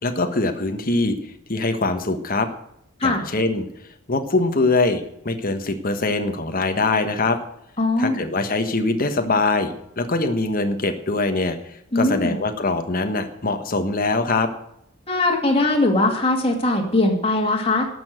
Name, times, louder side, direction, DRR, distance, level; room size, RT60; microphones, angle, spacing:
voice 1, 0.0-1.1 1.5-2.5 3.0-3.7 4.1-7.4 8.0-14.5, left 3 dB, 40° left, 7 dB, 1.3 m, -23 dB
voice 2, 7.8-8.2 11.9-12.3 15.1-17.9, left 2 dB, 25° left, 1 dB, 2.4 m, -20 dB
12.5 x 7.1 x 7.9 m, 0.78 s
head